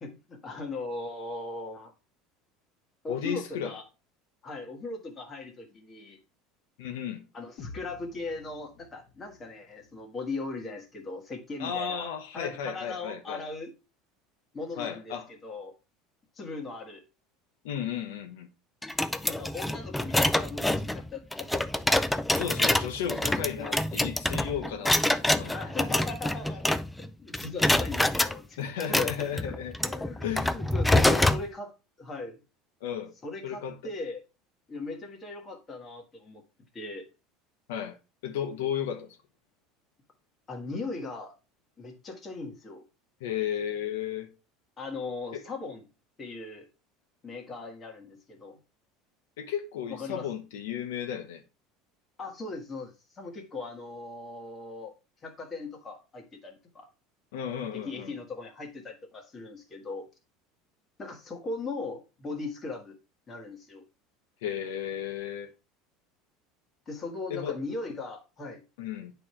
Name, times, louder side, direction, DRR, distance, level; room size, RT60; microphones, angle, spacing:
voice 1, 0.0-1.9 3.0-3.8 4.4-6.2 7.3-13.7 14.5-15.7 16.3-17.0 19.2-22.0 22.4-22.5 25.3-26.7 27.2-28.6 28.9-29.1 29.5-29.6 29.8-30.2 30.5-31.7 32.0-32.4 33.2-34.2 34.7-36.4 36.7-37.1 40.5-41.3 41.8-42.8 44.8-45.8 46.2-46.7 47.2-48.6 49.9-50.3 52.2-54.9 55.2-56.9 57.7-60.0 61.0-62.9 63.3-63.8 66.8-68.6, left 3 dB, 25° left, 1.6 m, -39 dB
voice 2, 3.1-3.7 6.8-7.2 11.6-13.4 14.8-15.3 17.6-18.5 22.3-25.5 28.6-29.8 30.2-30.5 30.9-31.2 32.8-33.1 33.4-33.9 37.7-38.0 38.2-39.2 43.2-44.3 45.3-45.4 49.4-51.4 57.3-58.1 64.4-65.5 67.3-67.6 68.8-69.1, left 9 dB, 90° left, 1.0 m, -34 dB
sound 1, 7.6-11.6, left 4 dB, 50° left, 1.8 m, -51 dB
sound 2, 18.8-27.1 27.3-28.3 28.8-31.4, left 1 dB, 5° left, 0.4 m, -26 dB
8.9 x 3.4 x 4.3 m
supercardioid pair, 140°, 0 cm